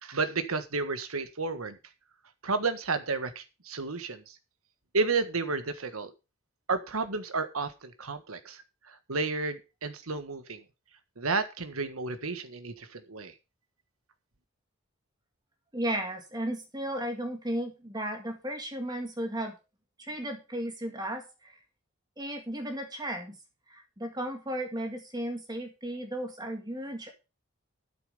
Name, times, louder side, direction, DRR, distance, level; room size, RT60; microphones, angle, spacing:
voice 1, 0.0-1.8 2.4-4.2 4.9-6.1 6.7-8.6 9.1-10.6 11.2-13.3, right 4 dB, 90° right, 10 dB, 1.5 m, -31 dB
voice 2, 15.7-19.5 20.0-21.6 22.2-23.4 23.7-27.1, right 1 dB, 20° right, 4 dB, 2.0 m, -35 dB
12.5 x 6.9 x 5.4 m, 0.29 s
head